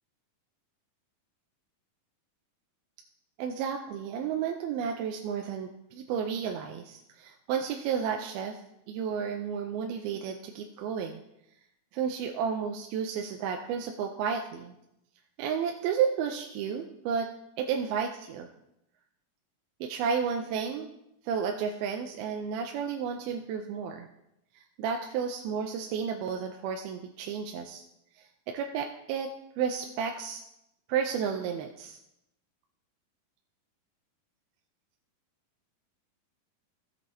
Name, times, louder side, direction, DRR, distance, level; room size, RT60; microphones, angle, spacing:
voice 1, 3.4-8.6 8.9-11.2 11.9-14.7 15.4-17.3 17.6-18.5 19.8-20.9 21.2-24.1 24.6-27.8 28.2-29.3 29.6-30.4 30.9-32.0, right 7 dB, 90° right, 3 dB, 2.5 m, -32 dB
16.0 x 8.1 x 2.8 m, 0.84 s
omnidirectional pair, 4.4 m